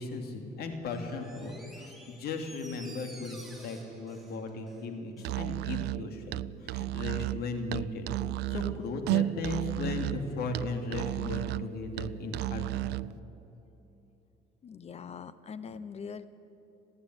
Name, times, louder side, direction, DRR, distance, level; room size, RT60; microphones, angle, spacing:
voice 1, 0.0-8.1 8.5-13.0, left 3 dB, 65° left, 5 dB, 3.0 m, -37 dB
Door, 0.8-5.4 5.7-5.8, right 1 dB, ahead, 4.4 m, -52 dB
Musical instrument, 5.2-13.1, right 16 dB, 80° right, 0.4 m, -33 dB
voice 2, 14.6-16.3, left 6 dB, 40° left, 14 dB, 0.8 m, -42 dB
30.0 x 11.0 x 9.7 m, 3.0 s
cardioid pair, 110°, 17 cm